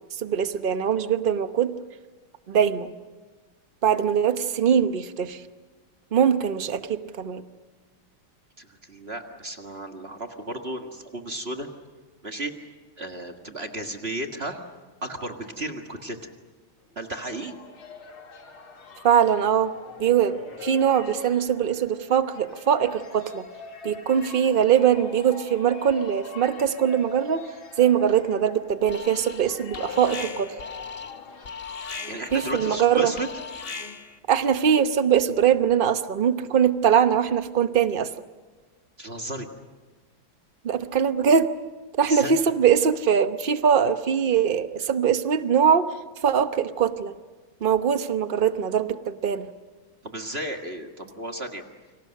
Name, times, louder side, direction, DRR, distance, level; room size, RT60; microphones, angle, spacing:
voice 1, 0.2-1.7 2.5-3.0 3.8-5.4 6.1-7.4 19.0-19.7 20.0-23.5 23.8-27.5 27.8-30.5 32.3-33.1 34.3-38.1 40.6-41.5 42.0-45.9 46.2-47.1 47.6-49.5, right 8 dB, 45° right, 10 dB, 0.6 m, -22 dB
voice 2, 8.6-11.7 12.2-12.5 13.0-14.6 15.0-16.2 17.0-17.5 32.1-33.3 39.0-39.5 42.0-42.3 50.0-51.6, right 1 dB, 30° right, 4 dB, 1.8 m, -34 dB
sound 1, 16.9-33.9, left 4 dB, 80° left, 3.2 m, -43 dB
Alarm, 28.9-29.5 29.7-34.2, left 5 dB, 35° left, 1.2 m, -38 dB
30.0 x 25.5 x 6.5 m, 1.3 s
omnidirectional pair, 2.3 m